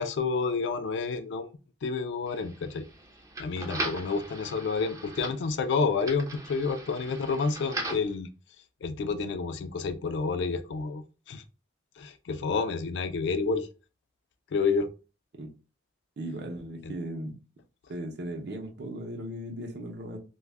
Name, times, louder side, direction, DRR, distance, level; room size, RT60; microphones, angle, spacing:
voice 1, 0.0-1.5 1.8-2.9 3.4-8.3 8.8-11.4 12.0-13.7 14.5-14.9 16.8-16.9, left 4 dB, 75° left, 0.3 m, -29 dB
sound 1, 2.3-8.1, right 2 dB, 15° right, 0.3 m, -39 dB
voice 2, 16.2-17.4 17.9-20.2, right 1 dB, 65° right, 0.5 m, -37 dB
2.2 x 2.0 x 3.3 m
head